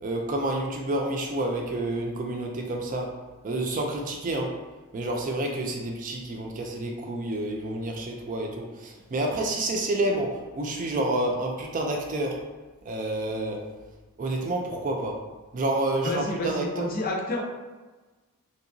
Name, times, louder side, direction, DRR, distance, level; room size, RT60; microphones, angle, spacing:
voice 1, 0.0-3.2 3.4-4.6 4.9-12.4 12.9-13.7 14.2-15.2 15.5-16.9, right 1 dB, 35° right, 1 dB, 0.4 m, -29 dB
voice 2, 16.0-17.4, left 1 dB, 40° left, -1 dB, 0.5 m, -29 dB
3.2 x 2.8 x 2.6 m, 1.3 s
head